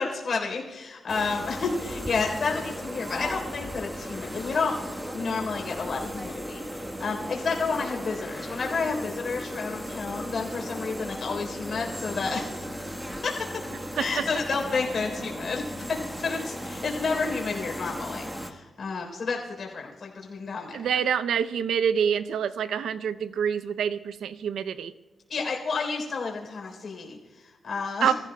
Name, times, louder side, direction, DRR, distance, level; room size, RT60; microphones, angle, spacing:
voice 1, 0.0-12.9 13.2-13.6 14.0-20.9 25.3-28.1, left 4 dB, 50° left, 1 dB, 3.7 m, -31 dB
sound 1, 1.1-18.5, equal, 5° right, 1.3 m, -36 dB
voice 2, 20.7-24.9 28.0-28.1, right 8 dB, 85° right, 13 dB, 0.6 m, -26 dB
23.5 x 15.0 x 2.3 m, 1.3 s
wide cardioid pair, 125°, 0 cm